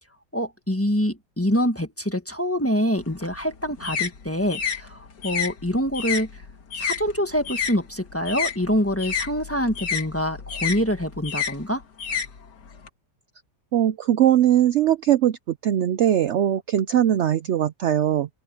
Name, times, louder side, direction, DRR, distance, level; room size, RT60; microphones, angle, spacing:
voice 1, 0.3-6.4 6.7-11.8, equal, 10° left, 1.3 m, -25 dB
sound 1, 3.0-7.8 8.1-12.9, left 7 dB, 75° left, 2.3 m, -30 dB
voice 2, 13.7-15.4 15.6-18.3, right 11 dB, 75° right, 0.6 m, -20 dB
open air
omnidirectional pair, 1.8 m